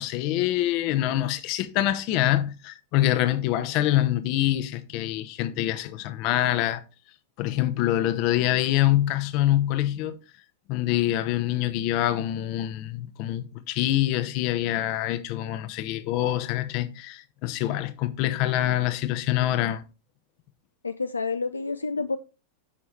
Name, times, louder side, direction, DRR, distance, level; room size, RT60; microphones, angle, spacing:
voice 1, 0.0-6.8 7.4-10.1 10.7-19.8, left 13 dB, 45° left, 0.8 m, -25 dB
voice 2, 20.8-22.2, left 4 dB, 80° left, 0.4 m, -29 dB
8.5 x 5.7 x 3.2 m
figure-of-eight pair, 90°, 0 cm